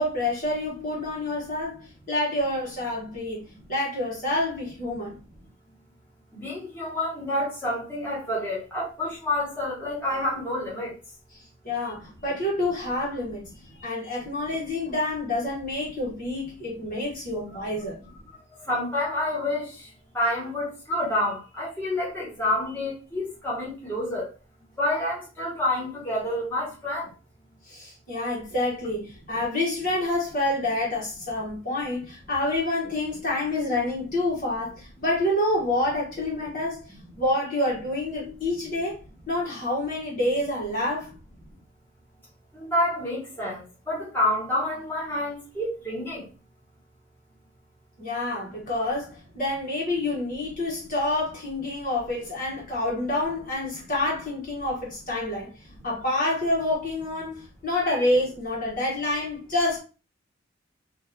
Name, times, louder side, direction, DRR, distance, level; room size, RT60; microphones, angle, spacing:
voice 1, 0.0-3.4 3.7-5.2 11.3-13.5 13.8-18.0 27.7-36.8 37.2-41.1 48.0-55.5 55.8-59.8, left 1 dB, 40° left, 1.1 m, -28 dB
voice 2, 6.3-10.9 13.8-14.1 18.5-24.3 24.8-27.1 42.5-46.3 57.9-58.0, left 1 dB, 10° left, 1.3 m, -28 dB
3.0 x 2.6 x 2.6 m
head